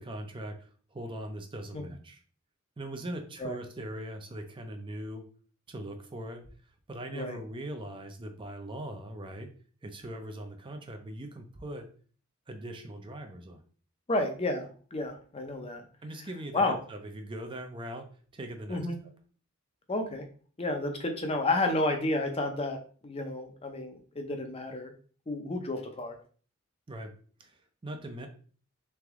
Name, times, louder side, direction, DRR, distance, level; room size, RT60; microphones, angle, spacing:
voice 1, 0.0-2.2 2.8-5.2 5.7-6.4 6.9-9.5 9.8-11.9 12.5-13.6 16.0-18.1 18.3-18.8 26.9-27.1 27.4-28.3, right 1 dB, 25° right, 5 dB, 0.5 m, -40 dB
voice 2, 14.1-15.8 16.5-16.8 18.7-19.0 19.9-20.2 20.6-22.8 23.0-24.9 25.3-26.2, left 2 dB, 25° left, 5 dB, 0.6 m, -31 dB
3.5 x 3.4 x 3.5 m, 0.43 s
head